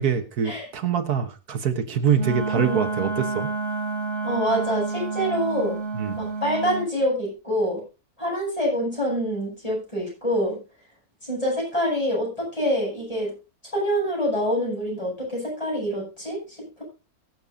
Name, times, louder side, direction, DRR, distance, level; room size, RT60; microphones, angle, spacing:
voice 1, 0.0-3.5 5.9-6.2, right 7 dB, 80° right, 7 dB, 1.8 m, -24 dB
Wind instrument woodwind instrument, 2.1-6.9, right 4 dB, 45° right, 2.4 m, -29 dB
voice 2, 2.5-2.8 4.2-5.8 6.2-7.8 8.2-10.6 11.2-13.3 13.7-16.8, equal, 20° left, -4 dB, 8.0 m, -26 dB
23.0 x 7.6 x 2.7 m, 0.29 s
omnidirectional pair, 1.6 m